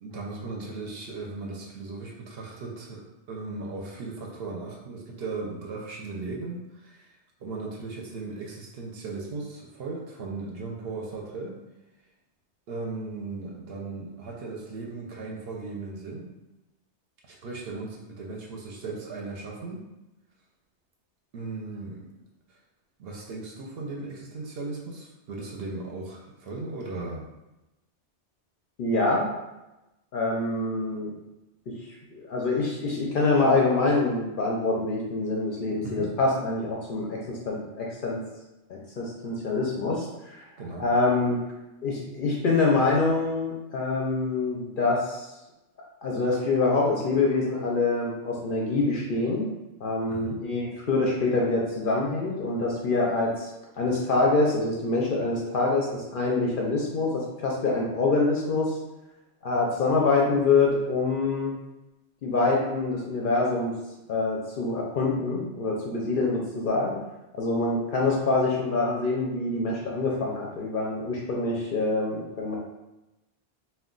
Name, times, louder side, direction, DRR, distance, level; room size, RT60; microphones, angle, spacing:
voice 1, 0.0-7.1 7.4-11.6 12.7-16.3 17.2-19.8 21.3-22.1 22.5-22.6 23.0-27.3 35.8-36.1 40.6-40.9 50.1-50.4, right 3 dB, 65° right, -1 dB, 0.8 m, -37 dB
voice 2, 28.8-29.3 30.1-31.1 32.1-38.2 38.7-40.5 40.8-41.4 41.8-45.3 46.0-49.5 49.8-53.5 53.8-58.8 59.4-61.5 62.2-63.7 64.1-67.0 67.3-72.6, left 3 dB, 60° left, -2 dB, 0.6 m, -25 dB
2.3 x 2.2 x 3.7 m, 0.99 s
omnidirectional pair, 1.2 m